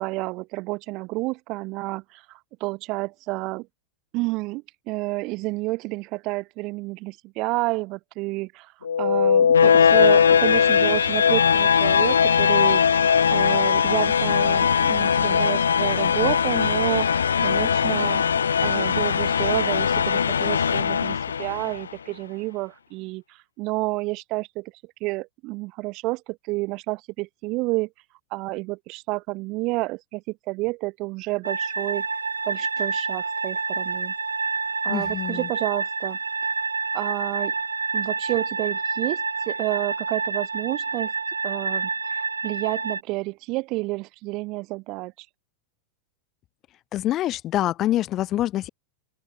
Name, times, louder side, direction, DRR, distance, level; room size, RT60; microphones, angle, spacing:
voice 1, 0.0-3.7 4.1-8.7 9.0-12.8 13.3-17.1 17.4-18.2 18.6-23.2 23.6-24.7 25.0-27.9 28.3-32.0 32.5-34.1 34.8-36.2 36.9-37.5 37.9-41.1 41.4-45.1, right 23 dB, 40° right, 0.7 m, -29 dB
sound 1, 8.8-21.8, left 7 dB, 70° left, 0.5 m, -20 dB
sound 2, 31.4-43.0, right 4 dB, 75° right, 0.3 m, -28 dB
voice 2, 34.9-35.5 46.9-48.7, left 13 dB, 35° left, 1.1 m, -25 dB
figure-of-eight pair, 90°, 0 cm